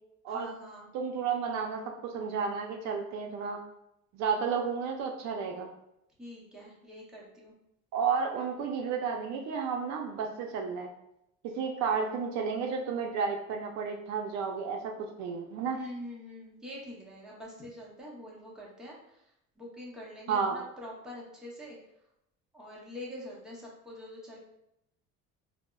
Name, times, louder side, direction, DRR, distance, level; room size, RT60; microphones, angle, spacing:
voice 1, 0.3-0.9 6.2-7.5 15.7-19.2 19.6-21.8 22.5-24.4, left 1 dB, ahead, -5 dB, 0.6 m, -45 dB
voice 2, 0.9-3.6 4.1-5.7 7.9-10.9 11.5-14.8 15.2-15.8 20.3-20.6, right 6 dB, 60° right, 3 dB, 0.5 m, -32 dB
4.7 x 2.0 x 2.2 m, 0.81 s
cardioid pair, 160°, 30 cm